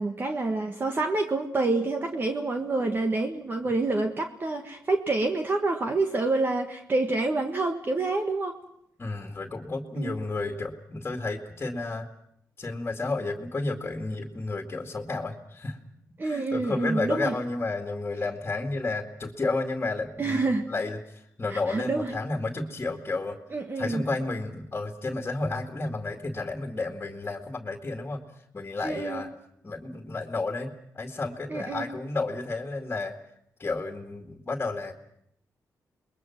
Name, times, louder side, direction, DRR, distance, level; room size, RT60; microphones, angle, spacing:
voice 1, 0.0-8.6 10.0-10.1 16.2-17.3 20.2-20.7 21.5-22.1 23.5-24.0 28.8-29.2 31.5-31.9, right 3 dB, 35° right, 4 dB, 1.6 m, -27 dB
voice 2, 9.0-12.1 12.6-15.8 16.2-23.4 23.8-28.2 28.5-29.3 29.6-33.2 33.6-34.9, left 3 dB, 30° left, 3 dB, 2.3 m, -32 dB
28.5 x 21.5 x 6.0 m, 0.74 s
cardioid pair, 110°, 7 cm